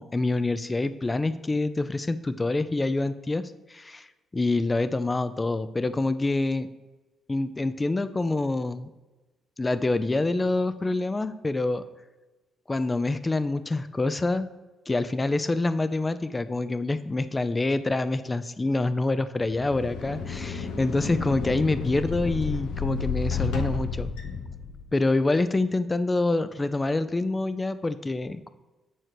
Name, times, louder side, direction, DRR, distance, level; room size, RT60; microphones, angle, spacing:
voice 1, 0.0-4.1 4.3-6.7 7.3-8.9 9.6-11.8 12.7-14.5 14.9-24.1 24.9-28.5, left 2 dB, 20° left, 12 dB, 0.5 m, -26 dB
sound 1, 19.4-25.1, left 5 dB, 85° left, 1.0 m, -31 dB
9.3 x 4.6 x 6.1 m, 1.1 s
cardioid pair, 90°, 0 cm